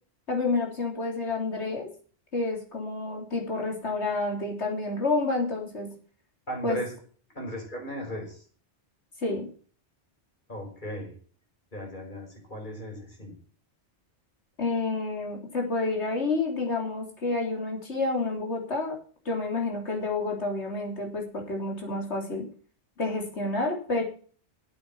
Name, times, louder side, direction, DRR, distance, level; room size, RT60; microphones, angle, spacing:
voice 1, 0.3-1.9 2.3-5.9 6.6-6.8 9.2-9.5 14.6-19.0 19.3-22.5 23.0-24.0, left 3 dB, 75° left, 1 dB, 3.7 m, -29 dB
voice 2, 6.5-6.9 7.3-8.4 10.5-11.2 11.7-13.3, equal, 45° left, -1 dB, 5.5 m, -36 dB
8.9 x 8.6 x 7.4 m, 0.41 s
omnidirectional pair, 1.2 m